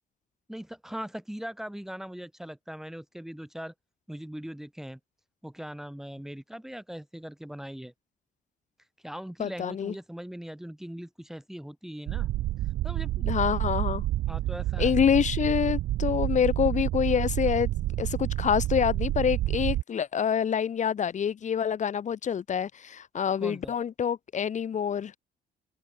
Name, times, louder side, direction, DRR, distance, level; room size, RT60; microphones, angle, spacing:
voice 1, 0.5-3.7 4.1-5.0 5.4-7.9 9.0-12.3 12.8-13.4 14.3-15.0 23.4-23.7, equal, ahead, 5.0 m, -40 dB
voice 2, 9.4-9.9 13.3-14.0 14.8-17.7 18.0-25.1, left 8 dB, 40° left, 6.5 m, -26 dB
sound 1, 12.1-19.8, right 15 dB, 75° right, 1.6 m, -29 dB
cardioid pair, 165°, 19 cm